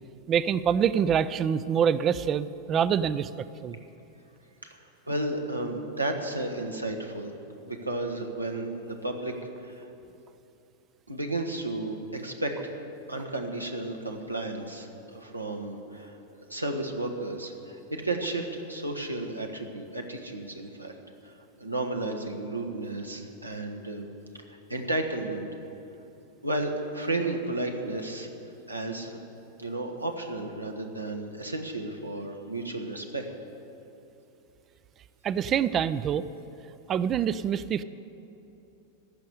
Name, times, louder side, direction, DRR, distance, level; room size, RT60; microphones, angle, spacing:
voice 1, 0.3-3.3 3.6-3.8 35.2-36.2 36.9-37.8, right 8 dB, 30° right, 16 dB, 0.4 m, -25 dB
voice 2, 5.1-7.3 7.6-9.3 9.6-9.9 11.1-12.8 13.1-21.0 21.2-24.1 24.7-25.5 26.4-28.3 28.7-29.2 29.6-33.3, right 2 dB, 85° right, 3 dB, 1.3 m, -33 dB
15.0 x 6.5 x 10.0 m, 2.9 s
figure-of-eight pair, 90°, 0 cm